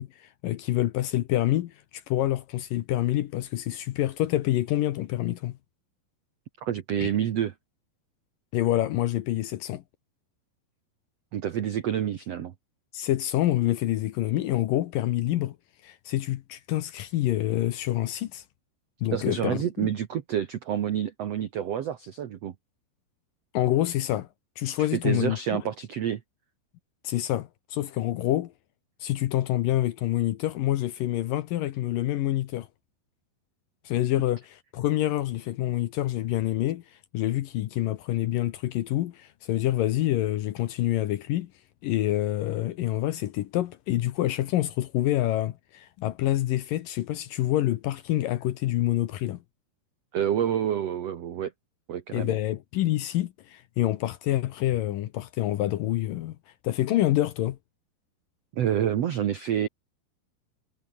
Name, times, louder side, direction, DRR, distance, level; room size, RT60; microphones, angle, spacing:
voice 1, 0.0-5.6 7.0-7.1 8.5-9.8 12.9-15.6 15.8-18.4 19.0-19.9 23.5-24.3 24.6-25.6 27.0-28.5 29.0-32.7 33.9-36.8 37.1-41.5 41.8-49.4 52.1-56.4 56.6-57.6, left 14 dB, 70° left, 2.2 m, -27 dB
voice 2, 6.6-7.5 11.3-12.5 19.1-22.5 24.9-26.2 50.1-51.5 51.9-52.4 58.5-59.7, right 10 dB, 80° right, 1.4 m, -28 dB
omnidirectional pair, 4.8 m